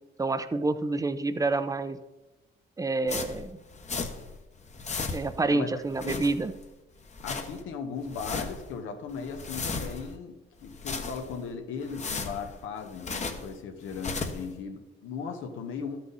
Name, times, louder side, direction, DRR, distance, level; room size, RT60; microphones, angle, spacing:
voice 1, 0.2-2.0 2.8-3.6 5.1-6.5, right 3 dB, 15° right, 11 dB, 0.6 m, -28 dB
sound 1, 3.1-4.4 4.6-5.5 5.8-6.7 7.0-7.6 8.0-8.7 9.1-10.2 10.6-11.4 11.8-13.5 13.9-14.5, left 4 dB, 35° left, 1.1 m, -36 dB
voice 2, 5.5-6.3 7.2-16.0, left 5 dB, 85° left, 5 dB, 1.3 m, -37 dB
12.5 x 6.1 x 4.1 m, 1.0 s
cardioid pair, 90°, 20 cm